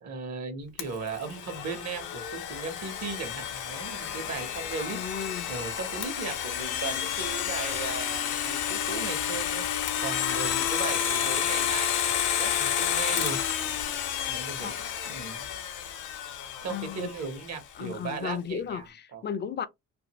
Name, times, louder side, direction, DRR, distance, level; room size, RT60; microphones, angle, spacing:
voice 1, 0.0-5.1 5.5-13.4 14.3-14.7 15.1-15.5 16.6-18.9 19.1-19.2, right 4 dB, 60° right, 1.1 m, -37 dB
Domestic sounds home sounds, 0.8-17.6, left 9 dB, 85° left, 0.7 m, -30 dB
voice 2, 4.8-5.5 14.6-14.7 16.7-17.1 17.8-19.7, left 7 dB, 35° left, 0.4 m, -35 dB
2.6 x 2.6 x 2.9 m
cardioid pair, 90°, 30 cm